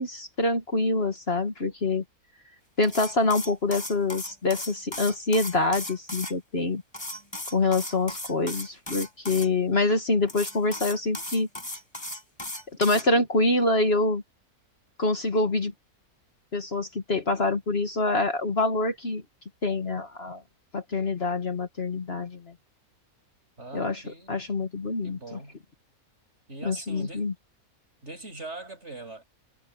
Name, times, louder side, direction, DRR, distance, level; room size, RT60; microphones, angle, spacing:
voice 1, 0.0-2.0 2.8-6.8 7.5-11.5 12.8-14.2 15.0-15.7 16.5-19.2 19.6-20.4 20.7-22.5 23.7-25.4 26.6-27.3, left 2 dB, 45° left, 1.8 m, -26 dB
sound 1, 2.8-6.3 6.9-9.5 10.3-13.0, left 1 dB, 15° left, 5.8 m, -36 dB
voice 2, 23.6-24.3 25.0-25.6 26.5-27.3 28.0-29.2, right 2 dB, 50° right, 7.8 m, -41 dB
omnidirectional pair, 1.5 m